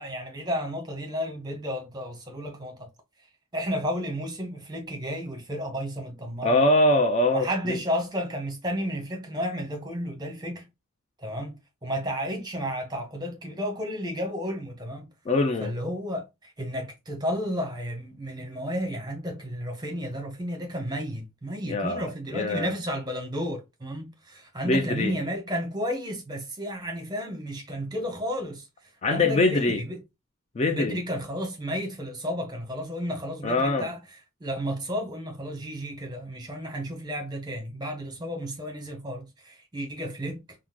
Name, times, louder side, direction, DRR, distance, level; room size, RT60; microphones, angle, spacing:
voice 1, 0.0-2.9 3.5-6.6 7.3-10.7 11.2-15.1 15.6-28.7 29.1-30.0 30.7-34.0 34.4-40.4, equal, 20° right, 0.8 m, -32 dB
voice 2, 6.4-7.8 15.3-15.7 21.7-22.7 24.6-25.2 29.0-29.8 30.6-31.0 33.4-33.9, left 2 dB, 30° left, 0.3 m, -23 dB
3.5 x 2.0 x 2.9 m
head